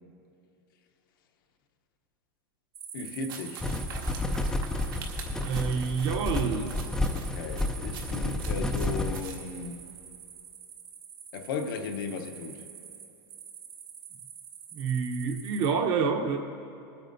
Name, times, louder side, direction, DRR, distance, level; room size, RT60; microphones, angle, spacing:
sound 1, 2.7-15.7, right 7 dB, 90° right, 1.2 m, -46 dB
voice 1, 2.9-3.6 7.1-9.9 11.3-12.7, left 4 dB, 70° left, 4 dB, 0.9 m, -36 dB
sound 2, 3.3-9.4, right 6 dB, 70° right, 1.6 m, -45 dB
sound 3, 3.6-9.2, left 2 dB, 5° left, 0.4 m, -31 dB
voice 2, 5.4-6.7 14.7-16.4, right 5 dB, 40° right, 4 dB, 0.9 m, -28 dB
24.0 x 8.9 x 2.7 m, 2.7 s
supercardioid pair, 145°, 12 cm